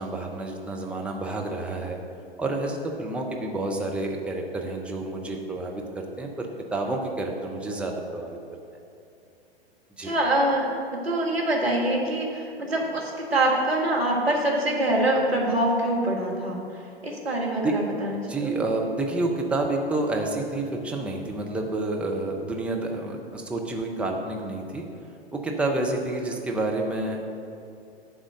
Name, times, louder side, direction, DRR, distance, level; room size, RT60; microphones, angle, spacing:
voice 1, 0.0-2.0 2.4-8.4 10.0-10.1 17.6-17.7 18.1-24.9 25.3-27.2, right 2 dB, 5° right, 0 dB, 0.7 m, -29 dB
voice 2, 10.0-16.6 17.0-18.5, right 1 dB, 70° right, -1 dB, 1.7 m, -25 dB
10.5 x 3.7 x 6.3 m, 2.6 s
figure-of-eight pair, 105°, 31 cm